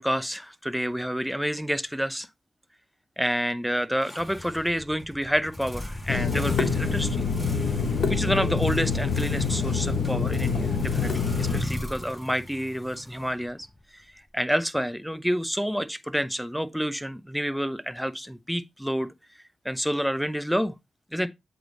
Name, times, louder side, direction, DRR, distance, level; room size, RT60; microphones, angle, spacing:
voice 1, 0.0-2.3 3.2-7.2 8.1-13.7 13.9-14.0 14.3-19.1 19.6-20.7 21.1-21.3, equal, ahead, 0.6 m, -28 dB
sound 1, 4.0-13.8, left 1 dB, 20° left, 2.4 m, -38 dB
Water tap faucet / Sink (filling or washing), 6.1-11.6, left 5 dB, 75° left, 1.0 m, -26 dB
7.7 x 3.4 x 3.9 m
cardioid pair, 60°, 0 cm